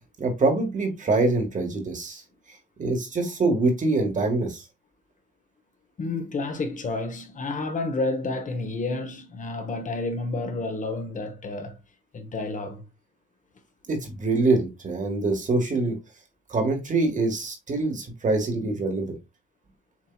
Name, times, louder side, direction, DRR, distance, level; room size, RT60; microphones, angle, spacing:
voice 1, 0.2-2.2 2.8-4.6 13.9-16.0 16.5-19.1, right 3 dB, 40° right, 1.6 m, -24 dB
voice 2, 6.0-11.7 12.1-12.8, left 3 dB, 40° left, 1.1 m, -30 dB
7.3 x 2.7 x 2.3 m
cardioid pair, 90°, 20 cm